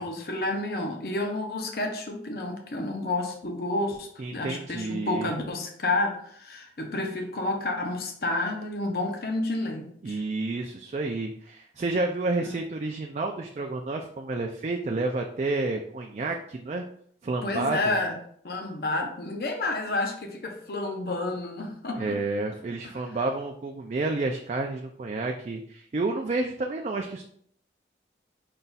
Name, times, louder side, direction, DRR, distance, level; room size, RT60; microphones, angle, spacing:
voice 1, 0.0-10.2 12.4-12.6 17.4-18.1 18.4-22.2, left 2 dB, 55° left, 2 dB, 0.6 m, -30 dB
voice 2, 4.2-5.3 10.0-16.8 17.2-18.0 22.0-27.2, right 3 dB, 40° right, 3 dB, 0.3 m, -30 dB
5.3 x 2.3 x 4.0 m, 0.64 s
head